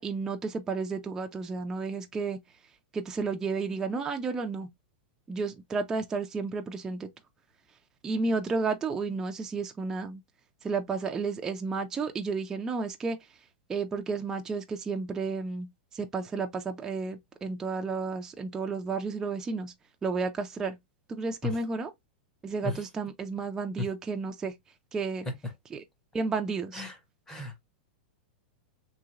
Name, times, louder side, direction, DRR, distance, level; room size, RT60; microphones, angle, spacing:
voice 1, 0.0-2.4 2.9-4.7 5.3-7.1 8.0-10.2 10.6-13.2 13.7-15.7 15.9-19.7 20.0-20.8 21.1-21.9 22.4-24.5 24.9-25.3 25.7-25.8 26.1-26.8, right 4 dB, 10° right, 0.3 m, -32 dB
voice 2, 27.3-27.6, left 3 dB, 10° left, 0.7 m, -34 dB
3.1 x 2.8 x 2.4 m
supercardioid pair, 160°, 6 cm